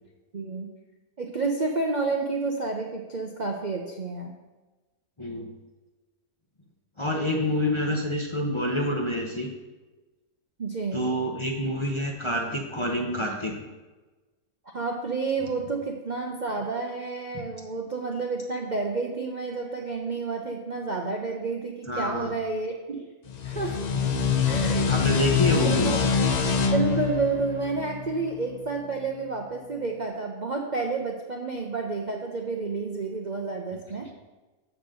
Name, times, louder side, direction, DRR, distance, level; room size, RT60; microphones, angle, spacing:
voice 1, 0.3-0.7 1.2-4.3 10.6-11.0 14.7-23.1 23.4-23.8 24.5-24.9 25.5-26.0 26.7-34.1, right 3 dB, 40° right, 1 dB, 0.6 m, -30 dB
voice 2, 5.2-5.5 7.0-9.5 10.9-13.6 17.3-17.5 21.9-22.3 24.8-26.0, left 1 dB, 25° left, -1 dB, 0.8 m, -27 dB
sound 1, 23.3-28.6, left 5 dB, 80° left, 0.3 m, -25 dB
7.1 x 6.1 x 6.4 m, 1.2 s
omnidirectional pair, 1.6 m